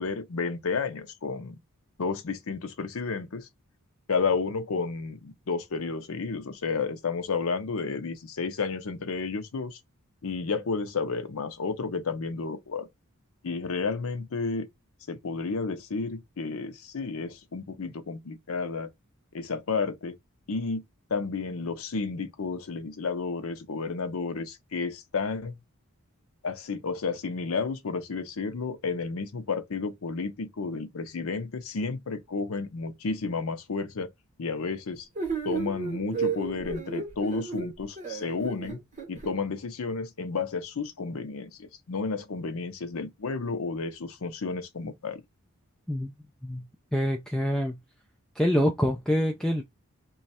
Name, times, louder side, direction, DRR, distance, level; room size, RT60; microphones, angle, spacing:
voice 1, 0.0-1.6 2.0-3.5 4.1-9.8 10.2-12.9 13.4-14.7 15.1-18.9 19.3-20.2 20.5-20.8 21.1-25.6 26.4-34.1 34.4-35.1 35.4-38.8 39.1-45.2, left 4 dB, 75° left, 0.6 m, -31 dB
sound 1, 35.1-39.3, right 5 dB, 35° right, 1.3 m, -33 dB
voice 2, 46.9-47.8 48.4-49.6, equal, 5° left, 0.3 m, -25 dB
3.1 x 2.3 x 4.1 m
head